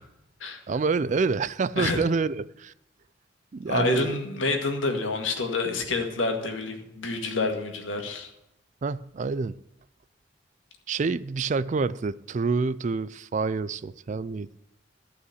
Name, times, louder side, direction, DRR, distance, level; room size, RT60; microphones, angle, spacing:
voice 1, 0.7-2.7 3.5-4.2 8.8-9.6 10.9-14.6, right 4 dB, 40° right, 0.3 m, -27 dB
voice 2, 3.7-8.3, left 3 dB, 80° left, 2.0 m, -28 dB
13.5 x 5.7 x 7.9 m
head